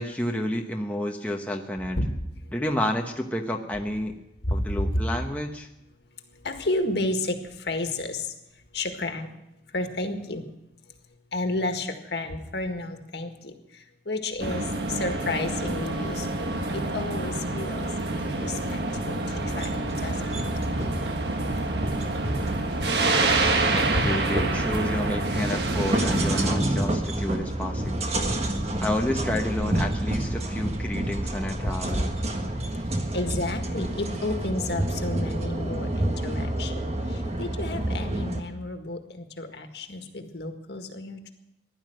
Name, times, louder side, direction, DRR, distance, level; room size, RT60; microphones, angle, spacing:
voice 1, 0.0-2.0 2.5-4.1 4.5-5.7 23.7-28.3 28.8-32.1, left 1 dB, 10° left, 1 dB, 1.0 m, -30 dB
voice 2, 4.4-5.1 6.4-8.3 8.7-9.3 9.7-10.4 11.3-13.5 14.1-17.9 18.4-18.8 19.1-19.7 20.0-20.2 24.1-24.2 31.9-32.0 33.1-41.3, left 2 dB, 65° left, 5 dB, 1.8 m, -31 dB
sound 1, 14.4-26.5, right 2 dB, 65° right, 1.5 m, -27 dB
sound 2, 19.3-38.4, right 1 dB, 35° right, 1.6 m, -29 dB
16.0 x 11.5 x 7.7 m, 0.88 s
head